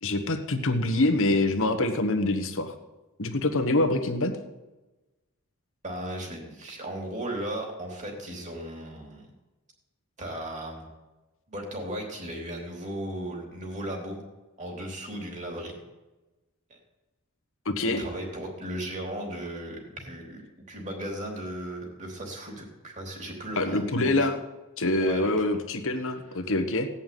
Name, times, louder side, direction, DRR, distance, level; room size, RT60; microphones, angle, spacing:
voice 1, 0.0-2.7 3.2-4.3 17.6-18.0 23.6-24.4 24.8-26.9, left 2 dB, 65° left, 6 dB, 1.4 m, -25 dB
voice 2, 5.8-9.3 10.2-10.9 11.5-14.2 14.6-15.8 16.7-16.8 17.8-24.3 25.0-25.6, right 1 dB, 35° right, 0 dB, 3.4 m, -36 dB
17.0 x 5.7 x 9.2 m, 1.1 s
head